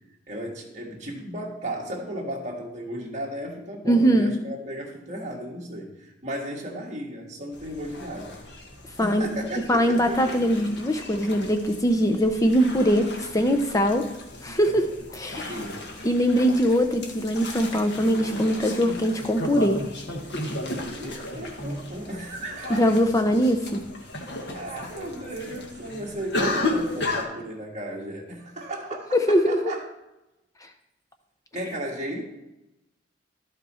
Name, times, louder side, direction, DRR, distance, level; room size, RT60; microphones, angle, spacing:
voice 1, 0.3-8.4 9.0-10.4 15.5-15.9 20.9-22.8 24.2-24.3 24.5-29.8 31.5-32.2, right 1 dB, 40° right, -1 dB, 1.7 m, -35 dB
voice 2, 3.9-4.3 9.0-9.3 9.7-14.0 14.4-14.9 15.1-15.5 16.0-19.8 22.7-23.8 29.3-29.7 30.6-30.7, equal, 20° left, 6 dB, 0.6 m, -22 dB
sound 1, 7.5-27.2, left 2 dB, 65° left, 1.5 m, -34 dB
12.5 x 5.4 x 4.2 m, 0.95 s
head